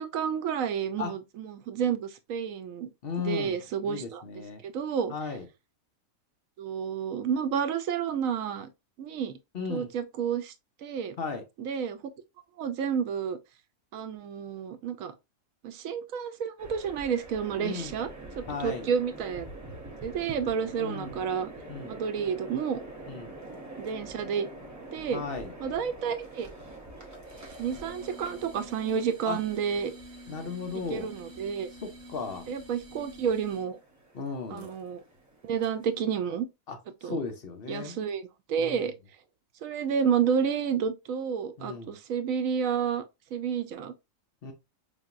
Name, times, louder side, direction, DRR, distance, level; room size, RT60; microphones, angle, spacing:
voice 1, 0.0-2.9 3.2-4.2 4.6-5.1 6.6-8.7 9.0-9.3 9.7-10.5 10.8-11.2 11.6-12.0 12.6-13.4 13.9-15.1 15.6-18.1 18.4-19.5 20.0-21.5 21.8-22.8 23.8-24.5 24.9-25.2 25.6-26.5 27.6-29.9 30.9-31.7 32.5-33.8 34.5-35.0 35.4-36.5 37.0-37.2 37.7-38.9 39.6-43.0 43.3-43.9, right 7 dB, 80° right, 1.0 m, -30 dB
voice 2, 3.0-3.6 3.8-4.6 5.1-5.4 9.5-9.9 11.2-11.4 17.6-17.9 18.5-18.9 20.8-21.2 21.7-21.9 23.1-23.3 25.1-25.5 29.2-29.4 30.3-31.1 31.8-32.5 34.1-34.7 36.7-38.0 38.6-38.8 41.6-42.0 44.4-44.5, left 5 dB, 50° left, 0.8 m, -36 dB
sound 1, 16.6-36.0, right 2 dB, 15° right, 0.7 m, -46 dB
sound 2, 27.3-33.8, equal, 55° right, 1.2 m, -49 dB
5.1 x 2.8 x 2.4 m
omnidirectional pair, 1.4 m